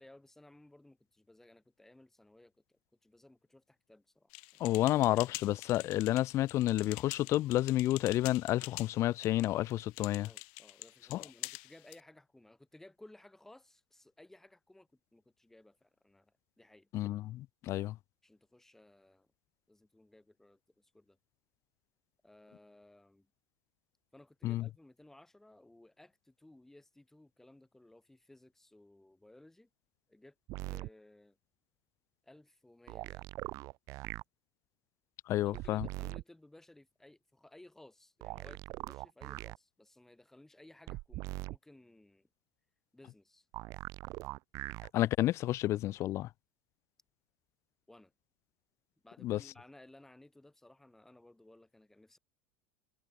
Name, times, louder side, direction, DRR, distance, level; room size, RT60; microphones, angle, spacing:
voice 1, 0.0-4.8 10.2-16.9 18.2-19.3 19.7-21.2 22.2-23.3 24.1-29.7 30.1-30.4 30.7-31.4 32.2-33.3 35.4-42.3 42.9-43.5 47.9-48.1 49.0-52.2, left 1 dB, 5° left, 6.2 m, -59 dB
sound 1, 4.3-12.0, left 40 dB or more, 65° left, 1.5 m, -46 dB
voice 2, 4.6-10.3 11.1-11.2 16.9-17.9 24.4-24.6 35.3-35.9 44.9-46.3 49.2-49.4, left 15 dB, 40° left, 0.6 m, -30 dB
sound 2, 30.5-30.9 32.9-34.2 35.5-36.2 38.2-39.6 40.9-41.6 43.5-44.9 46.2-46.3, right 20 dB, 50° right, 0.9 m, -41 dB
supercardioid pair, 125°, 7 cm